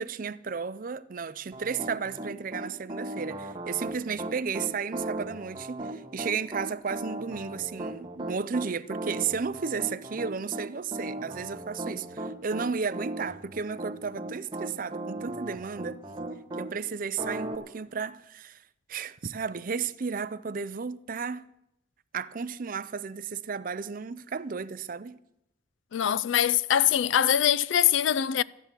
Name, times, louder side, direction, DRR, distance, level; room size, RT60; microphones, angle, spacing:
voice 1, 0.0-16.0 16.6-18.6 18.9-21.4 22.1-25.2, right 5 dB, 45° right, 0.5 m, -33 dB
Piano, 1.5-16.7 17.2-17.6, right 2 dB, 25° right, 1.4 m, -37 dB
voice 2, 25.9-28.4, left 10 dB, 80° left, 0.4 m, -23 dB
13.0 x 10.0 x 7.5 m
head